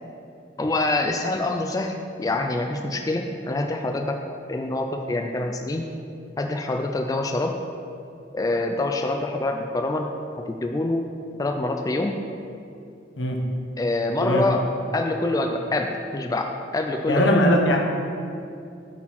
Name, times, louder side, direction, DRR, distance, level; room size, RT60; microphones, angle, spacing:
voice 1, 0.6-4.2 4.5-5.8 6.4-7.5 8.3-10.1 10.5-11.1 11.4-12.2 13.8-14.6 14.9-17.3, left 2 dB, 20° left, 4 dB, 0.3 m, -25 dB
voice 2, 17.1-17.8, left 1 dB, 80° left, 2 dB, 1.0 m, -20 dB
8.3 x 4.4 x 5.8 m, 2.5 s
head